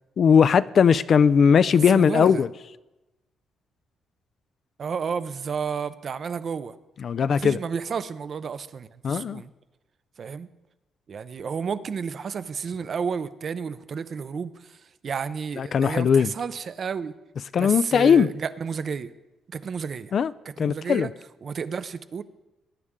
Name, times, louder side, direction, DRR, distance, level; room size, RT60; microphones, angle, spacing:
voice 1, 0.2-2.5 7.0-7.6 9.0-9.4 15.6-16.3 17.5-18.3 20.1-20.3 20.6-21.1, left 7 dB, 55° left, 16 dB, 0.4 m, -19 dB
voice 2, 1.7-2.4 4.8-6.8 7.3-9.5 10.2-10.5 11.1-17.1 17.5-19.1 19.5-20.1 20.6-21.1 21.4-22.2, right 6 dB, 50° right, 13 dB, 0.6 m, -31 dB
18.5 x 9.8 x 3.7 m, 1.0 s
cardioid pair, 90°, 0 cm